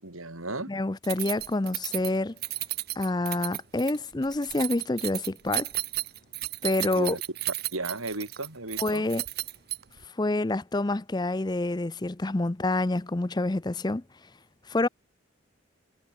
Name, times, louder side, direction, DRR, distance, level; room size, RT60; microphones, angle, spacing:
voice 1, 0.0-0.7 6.9-7.2 7.7-9.1, right 2 dB, 90° right, 4.4 m, -34 dB
voice 2, 0.7-2.4 3.0-5.7 6.6-7.2 8.8-9.2 10.2-14.0 14.7-14.9, left 2 dB, 20° left, 0.5 m, -27 dB
Keys jangling, 1.0-10.1, right 17 dB, 50° right, 0.7 m, -34 dB
head